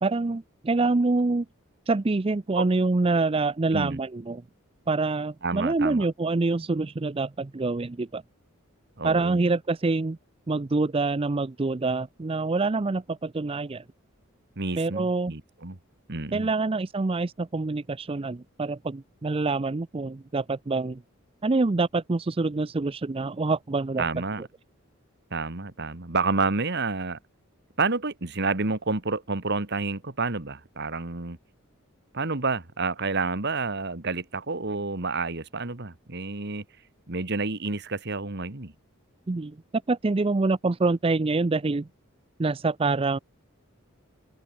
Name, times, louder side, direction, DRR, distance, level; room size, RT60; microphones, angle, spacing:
voice 1, 0.0-1.5 1.9-4.4 4.9-8.2 9.0-10.2 10.5-13.8 14.8-15.3 16.3-21.0 21.4-24.0 39.3-39.6 39.9-41.9 42.4-43.2, right 3 dB, 25° right, 0.5 m, -26 dB
voice 2, 5.4-6.1 9.0-9.4 14.6-15.8 16.1-16.5 24.0-24.4 25.3-27.2 27.8-31.4 32.1-36.6 37.1-38.7, right 3 dB, 55° right, 1.8 m, -29 dB
head